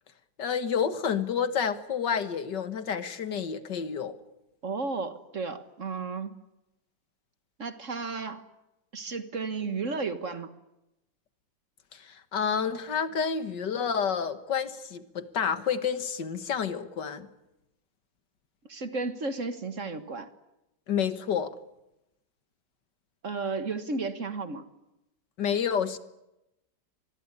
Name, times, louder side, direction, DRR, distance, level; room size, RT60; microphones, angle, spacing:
voice 1, 0.4-4.2 11.9-17.3 20.9-21.6 25.4-26.0, left 7 dB, 70° left, 12 dB, 2.1 m, -29 dB
voice 2, 4.6-6.3 7.6-8.4 8.9-10.6 18.7-20.3 23.2-24.6, right 4 dB, 45° right, 11 dB, 1.7 m, -33 dB
25.5 x 21.0 x 9.7 m, 0.91 s
omnidirectional pair, 2.0 m